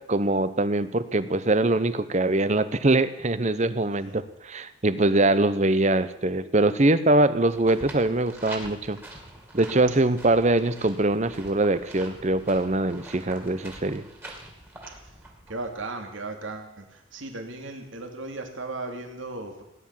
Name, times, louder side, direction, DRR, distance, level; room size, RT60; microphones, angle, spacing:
voice 1, 0.1-9.0 9.5-14.0, right 2 dB, 35° right, 13 dB, 0.8 m, -23 dB
sound 1, 7.5-15.8, right 1 dB, 10° right, 2.6 m, -44 dB
voice 2, 15.5-19.6, right 2 dB, 70° right, 4 dB, 2.6 m, -36 dB
17.5 x 11.0 x 7.5 m, 0.81 s
head